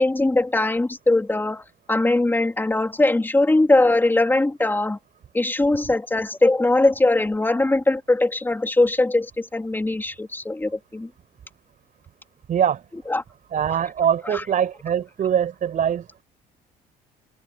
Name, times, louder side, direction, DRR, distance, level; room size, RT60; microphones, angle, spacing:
voice 1, 0.0-5.0 5.3-11.1 13.1-13.2 14.2-14.4, left 2 dB, 10° left, 3.2 m, -21 dB
voice 2, 12.5-12.8 13.5-16.2, right 9 dB, 50° right, 6.0 m, -23 dB
open air
cardioid pair, 110°, 17 cm